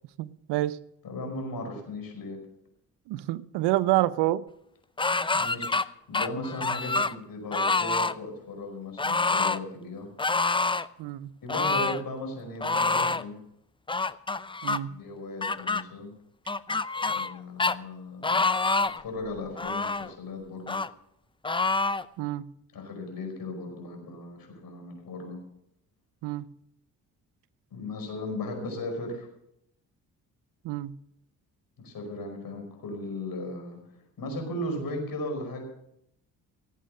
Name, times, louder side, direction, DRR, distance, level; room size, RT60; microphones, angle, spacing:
voice 1, 0.2-0.8 3.1-4.4 11.0-11.3 14.6-14.9 22.2-22.5 26.2-26.5 30.6-30.9, right 16 dB, 80° right, 0.7 m, -28 dB
voice 2, 1.0-2.4 5.3-10.1 11.4-13.4 14.8-16.1 17.0-18.3 19.0-20.8 22.7-25.4 27.7-29.3 31.8-33.8 34.2-35.6, left 2 dB, 60° left, 5.2 m, -36 dB
sound 1, 5.0-5.8 6.1-7.1 7.5-8.1 9.0-9.6 10.2-10.9 11.5-12.0 12.6-13.2 13.9-14.8 15.4-15.8 16.5-17.3 17.6-17.7 18.2-19.0 19.6-20.1 20.7-20.9 21.4-22.0, left 3 dB, 15° left, 0.6 m, -26 dB
17.5 x 8.5 x 6.5 m
supercardioid pair, 50°, 40 cm